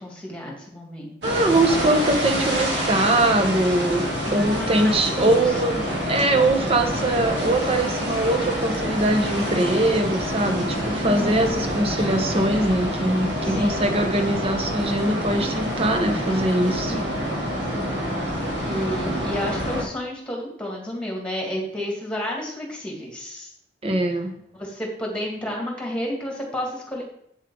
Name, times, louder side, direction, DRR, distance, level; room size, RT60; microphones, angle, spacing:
voice 1, 0.0-1.2 4.3-5.6 8.0-8.4 11.0-11.6 13.4-13.9 16.9-17.2 17.7-18.0 18.6-23.5 24.5-27.0, left 1 dB, 5° left, -1 dB, 2.3 m, -31 dB
voice 2, 1.2-5.8 6.1-16.9 23.8-24.4, right 1 dB, 35° right, 6 dB, 1.0 m, -22 dB
sound 1, 1.2-19.8, equal, 75° right, 3.1 m, -27 dB
8.3 x 7.3 x 3.9 m, 0.71 s
head